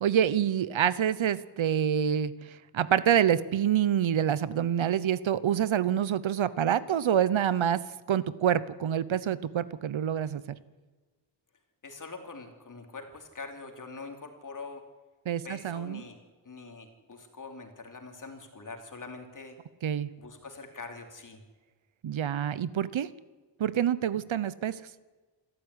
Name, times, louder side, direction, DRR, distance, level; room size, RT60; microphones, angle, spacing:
voice 1, 0.0-7.8 8.1-10.6 15.3-16.0 19.8-20.1 22.0-23.1 23.6-24.8, right 9 dB, 75° right, 17 dB, 1.0 m, -27 dB
voice 2, 11.8-14.9 15.4-19.6 20.2-21.4, left 3 dB, 40° left, 4 dB, 3.2 m, -44 dB
27.5 x 13.0 x 9.7 m, 1.3 s
wide cardioid pair, 180°, 47 cm